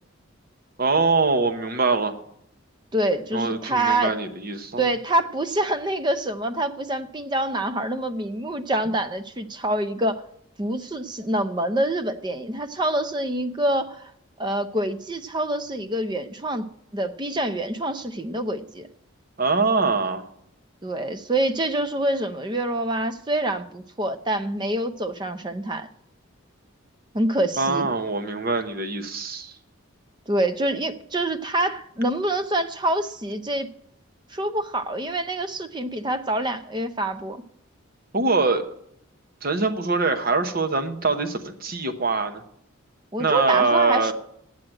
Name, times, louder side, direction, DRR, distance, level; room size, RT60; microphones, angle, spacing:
voice 1, 0.8-2.2 3.3-4.8 19.4-20.3 27.6-29.5 38.1-38.7 39.4-42.4 43.2-44.1, right 3 dB, 45° right, 7 dB, 1.0 m, -23 dB
voice 2, 2.9-4.2 4.8-10.2 10.6-14.1 14.4-18.9 20.8-25.9 27.1-27.9 30.3-33.7 34.3-37.4 43.1-44.1, right 1 dB, 20° right, 10 dB, 0.6 m, -26 dB
9.3 x 7.6 x 8.8 m, 0.73 s
head